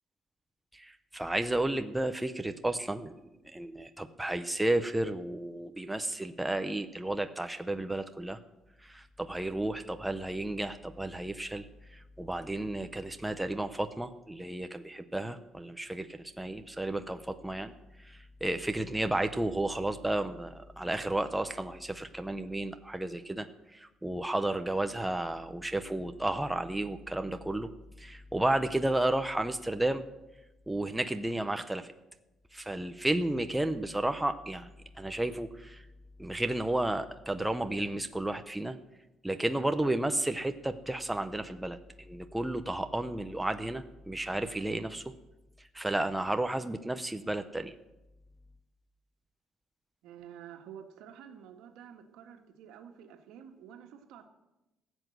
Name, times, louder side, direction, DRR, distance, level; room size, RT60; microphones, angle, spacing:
voice 1, 0.7-3.1 3.4-8.4 8.8-11.7 11.9-17.7 18.0-27.7 28.0-30.0 30.7-31.9 32.5-34.7 35.0-35.8 36.2-38.8 39.2-41.8 42.1-45.0 45.7-47.7, right 1 dB, 5° right, 8 dB, 0.6 m, -32 dB
voice 2, 50.0-54.3, right 9 dB, 80° right, 5 dB, 1.7 m, -50 dB
15.5 x 8.0 x 7.8 m, 0.97 s
cardioid pair, 170°, 0 cm